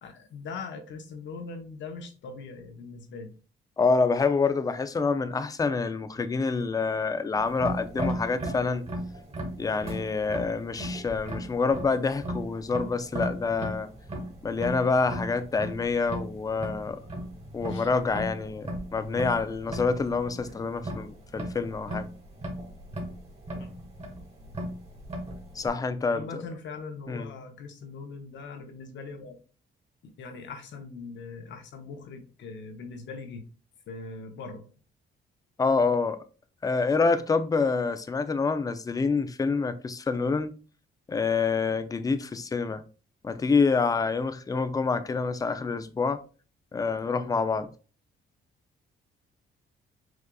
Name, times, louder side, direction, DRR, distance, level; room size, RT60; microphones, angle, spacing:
voice 1, 0.0-3.3 17.7-17.9 23.6-23.7 26.1-29.4 30.0-33.4 33.9-34.6, left 4 dB, 70° left, 1.0 m, -41 dB
voice 2, 3.8-8.8 9.6-13.9 14.4-17.0 17.5-22.1 25.6-26.3 27.1-27.3 35.6-36.2 36.6-40.5 41.1-42.8 43.2-46.2 46.7-47.7, left 4 dB, 20° left, 0.4 m, -27 dB
sound 1, 7.3-25.7, equal, 30° right, 1.6 m, -37 dB
6.3 x 2.4 x 2.3 m
cardioid pair, 90°, 20 cm